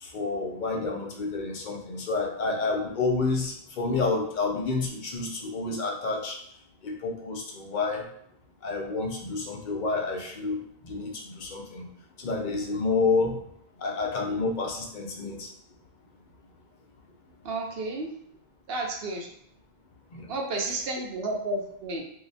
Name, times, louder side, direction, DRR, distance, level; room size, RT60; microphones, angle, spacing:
voice 1, 0.0-6.4 6.8-8.0 8.6-11.8 12.2-13.4 13.8-15.5 20.1-20.3, left 3 dB, 55° left, 0 dB, 0.7 m, -29 dB
voice 2, 17.4-18.1 18.7-19.3 20.3-22.0, right 2 dB, 70° right, 1 dB, 0.9 m, -31 dB
2.8 x 2.2 x 3.9 m, 0.67 s
omnidirectional pair, 1.0 m